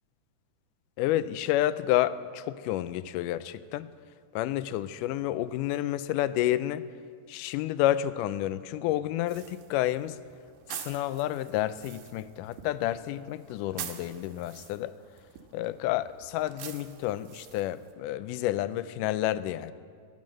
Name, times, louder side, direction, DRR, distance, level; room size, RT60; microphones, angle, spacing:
voice 1, 1.0-3.9 4.3-6.9 7.3-10.2 10.7-14.9 15.5-19.7, left 13 dB, 80° left, 15 dB, 2.0 m, -30 dB
sound 1, 9.3-17.9, right 10 dB, 80° right, 2.5 m, -46 dB
16.5 x 9.4 x 8.7 m, 2.1 s
omnidirectional pair, 3.8 m